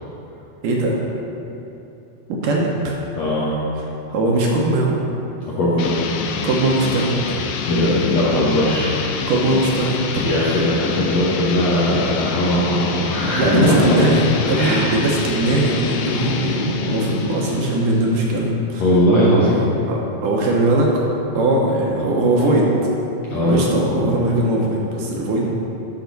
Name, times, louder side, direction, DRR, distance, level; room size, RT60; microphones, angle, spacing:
voice 1, 0.6-1.0 2.3-3.0 4.1-5.0 6.4-7.4 9.3-10.3 13.4-18.8 19.9-21.1 21.4-22.7 23.3-25.5, right 1 dB, 70° right, -2 dB, 2.2 m, -20 dB
voice 2, 3.2-3.5 5.4-6.0 7.7-9.0 10.2-14.0 14.5-14.8 18.8-19.7 23.3-23.7, left 1 dB, 65° left, -7 dB, 1.8 m, -19 dB
sound 1, 5.8-18.3, left 5 dB, 85° left, 2.5 m, -27 dB
11.5 x 6.0 x 4.0 m, 2.9 s
omnidirectional pair, 4.3 m